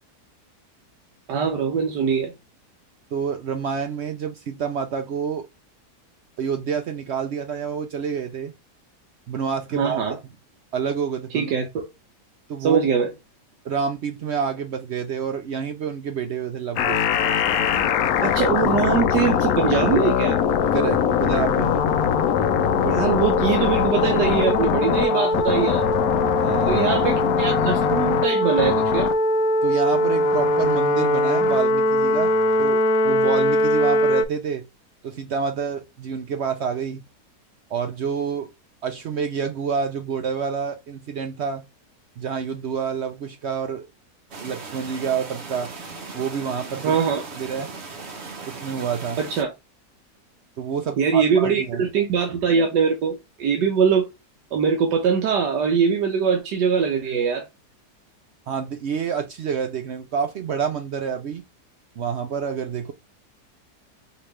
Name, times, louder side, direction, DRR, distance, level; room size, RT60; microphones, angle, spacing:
voice 1, 1.3-2.3 9.7-10.2 11.3-11.9 12.6-13.1 18.2-20.4 22.8-25.9 26.7-29.1 46.8-47.2 49.2-49.5 51.0-54.1 54.5-57.5, right 6 dB, 90° right, 1.4 m, -22 dB
voice 2, 3.1-5.5 6.4-8.5 9.3-10.0 10.7-11.5 12.5-12.8 13.6-17.1 20.7-21.8 26.4-26.8 29.6-34.7 35.0-37.0 37.7-38.5 38.8-41.6 42.2-43.9 44.4-45.7 46.1-47.0 47.4-47.7 48.5-49.2 50.6-51.8 58.5-61.4 62.0-62.9, right 7 dB, 70° right, 0.6 m, -28 dB
sound 1, 16.8-34.2, left 4 dB, 70° left, 1.0 m, -20 dB
sound 2, 44.3-49.4, right 4 dB, 50° right, 0.9 m, -38 dB
5.2 x 2.9 x 3.1 m
omnidirectional pair, 1.8 m